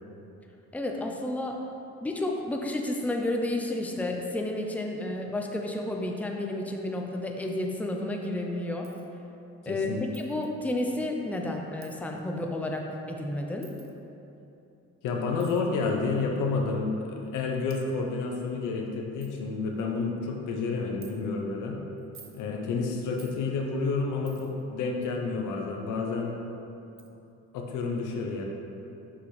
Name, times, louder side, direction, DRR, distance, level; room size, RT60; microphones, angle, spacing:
voice 1, 0.7-1.6 2.0-8.9 9.7-13.7, left 1 dB, 5° left, 1 dB, 0.6 m, -31 dB
Coin (dropping), 8.8-9.1 10.1-10.5 11.8-12.0 13.6-13.9 15.4-15.6 16.5-16.6 17.3-17.4 17.7-17.8 18.5-18.6 18.8-18.9 19.2-19.3 19.8-20.1 21.0-21.1 22.0-22.4 23.2-23.4 24.3-24.6 26.3-26.4 27.0-27.1, right 7 dB, 45° right, 0.7 m, -53 dB
voice 2, 9.6-10.0 15.0-21.8 22.3-26.3 27.5-28.4, left 4 dB, 85° left, 1 dB, 0.9 m, -30 dB
6.2 x 5.7 x 3.3 m, 2.9 s
cardioid pair, 90°, 30 cm